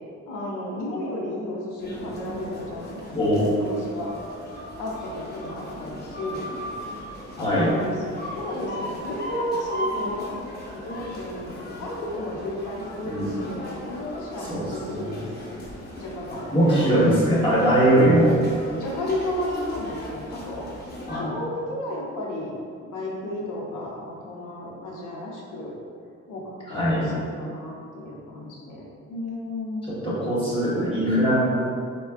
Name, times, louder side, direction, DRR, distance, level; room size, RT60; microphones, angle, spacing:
voice 1, 0.3-4.1 4.8-6.5 7.4-10.4 10.7-15.6 16.0-16.9 18.8-20.7 21.1-25.7 26.3-28.8 29.1-29.9, left 1 dB, 85° left, -3 dB, 0.7 m, -33 dB
sound 1, 1.8-21.2, equal, 35° left, 0.8 m, -37 dB
voice 2, 3.1-3.5 7.4-7.7 13.0-13.4 14.5-15.1 16.5-18.4 21.1-21.4 26.7-27.1 29.9-31.4, equal, 15° left, -8 dB, 1.3 m, -21 dB
4.3 x 2.2 x 2.4 m, 2.2 s
cardioid pair, 90°, 30 cm